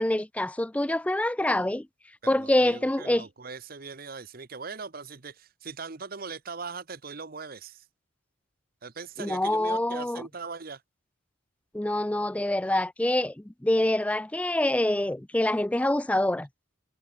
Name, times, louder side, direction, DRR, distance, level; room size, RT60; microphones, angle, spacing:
voice 1, 0.0-1.9 2.3-3.2 9.2-10.2 11.7-16.5, left 1 dB, 5° left, 0.3 m, -26 dB
voice 2, 2.2-7.9 8.8-10.8, right 4 dB, 45° right, 0.9 m, -40 dB
head